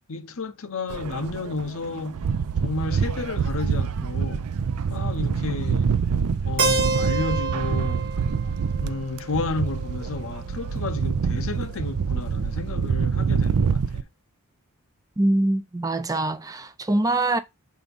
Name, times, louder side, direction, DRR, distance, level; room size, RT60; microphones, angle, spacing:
voice 1, 0.1-2.3 2.6-4.4 4.9-5.9 6.4-8.1 8.8-14.1, left 3 dB, 65° left, 0.8 m, -32 dB
sound 1, 0.9-14.0, right 6 dB, 75° right, 0.4 m, -26 dB
Keyboard (musical), 6.6-10.5, right 3 dB, 55° right, 1.1 m, -29 dB
voice 2, 15.2-17.4, right 2 dB, 15° right, 0.5 m, -23 dB
7.0 x 2.7 x 5.2 m
head